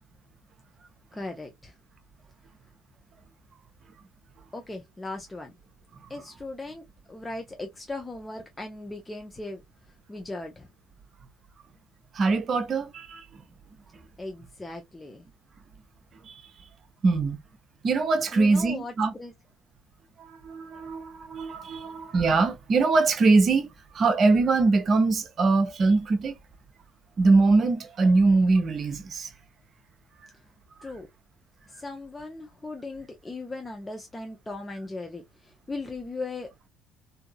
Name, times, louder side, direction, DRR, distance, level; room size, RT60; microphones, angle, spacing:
voice 1, 1.1-1.7 4.5-5.6 6.1-9.6 10.1-10.7 14.2-15.3 18.3-18.9 19.2-19.3 30.8-31.1 31.7-36.5, left 2 dB, 15° left, 0.6 m, -38 dB
voice 2, 12.1-13.4 16.2-16.4 17.0-17.4 17.8-19.1 20.2-23.7 23.9-26.4 27.2-29.3, right 3 dB, 40° right, 0.8 m, -22 dB
3.6 x 2.8 x 2.2 m
figure-of-eight pair, 55°, 0 cm